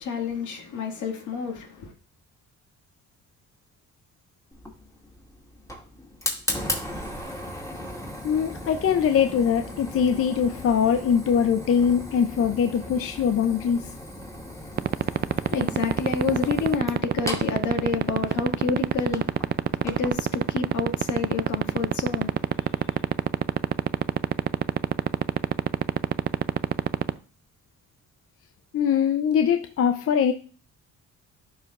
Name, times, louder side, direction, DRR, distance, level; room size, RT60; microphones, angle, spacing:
voice 1, 0.0-1.9 14.9-23.0, left 5 dB, 75° left, 2.0 m, -30 dB
Fire, 4.5-20.2, left 1 dB, 10° left, 2.3 m, -37 dB
voice 2, 8.2-13.9 28.7-30.3, left 7 dB, 50° left, 0.6 m, -22 dB
sound 1, 14.8-27.1, right 9 dB, 35° right, 0.4 m, -21 dB
12.0 x 4.7 x 2.4 m
cardioid pair, 90°, 30 cm